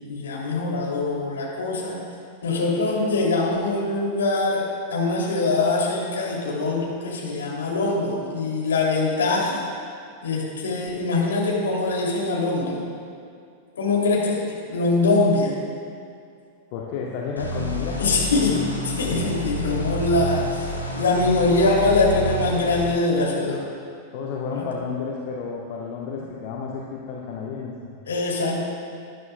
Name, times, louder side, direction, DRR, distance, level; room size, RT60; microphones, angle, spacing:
voice 1, 0.0-2.0 2.4-9.6 10.2-12.8 13.8-15.5 18.0-18.6 18.8-23.6 24.5-24.6 28.1-28.6, left 3 dB, 65° left, -3 dB, 2.7 m, -23 dB
voice 2, 16.7-18.1 24.1-27.9, left 5 dB, 45° left, -2 dB, 1.0 m, -31 dB
sound 1, 17.4-22.9, equal, 90° left, 1.3 m, -29 dB
18.0 x 11.0 x 2.2 m, 2.3 s
figure-of-eight pair, 90°, 0 cm